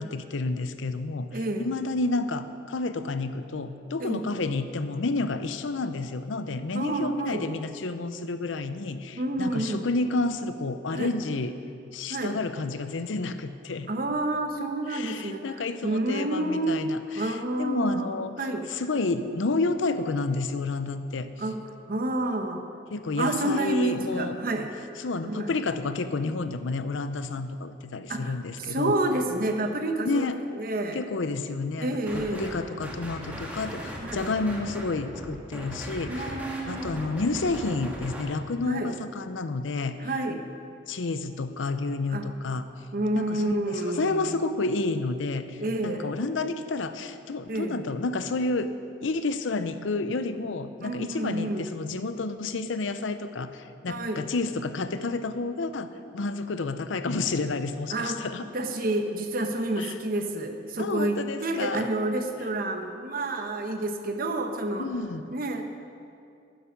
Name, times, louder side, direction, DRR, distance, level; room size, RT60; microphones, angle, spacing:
voice 1, 0.0-1.3 1.6-11.5 11.9-13.9 14.9-18.3 18.7-21.3 22.9-24.4 25.0-29.0 30.0-30.4 30.9-36.3 36.7-40.1 40.9-42.7 43.2-48.7 49.0-58.5 59.8-59.9 60.8-61.9 62.4-62.5 64.8-65.3, left 3 dB, 85° left, 11 dB, 0.6 m, -30 dB
voice 2, 1.3-1.7 4.0-4.2 6.7-7.5 9.2-9.8 10.9-11.2 12.1-12.4 13.9-16.8 17.1-18.6 21.4-21.6 21.9-22.6 23.2-24.7 25.3-25.5 28.1-30.3 30.5-31.0 31.8-32.5 34.0-34.3 36.1-37.1 38.7-38.9 40.0-40.4 42.1-42.3 42.9-44.4 45.6-46.1 47.5-47.8 50.8-51.7 53.9-54.3 57.9-58.2 58.5-64.9 65.3-65.6, right 1 dB, 50° right, 5 dB, 0.9 m, -29 dB
sound 1, 32.1-32.6 32.8-38.2, equal, 10° right, 1.5 m, -38 dB
11.5 x 10.0 x 5.2 m, 2.5 s
head